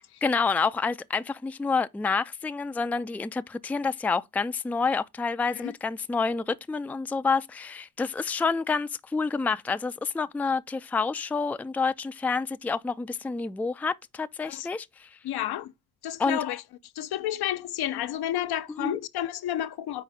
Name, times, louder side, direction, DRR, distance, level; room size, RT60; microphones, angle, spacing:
voice 1, 0.2-15.1 16.2-16.4 18.8-19.0, left 4 dB, 5° left, 0.3 m, -28 dB
voice 2, 15.2-15.7 16.0-16.6 17.0-20.0, left 12 dB, 70° left, 0.6 m, -31 dB
5.2 x 4.1 x 5.5 m
supercardioid pair, 65°, 39 cm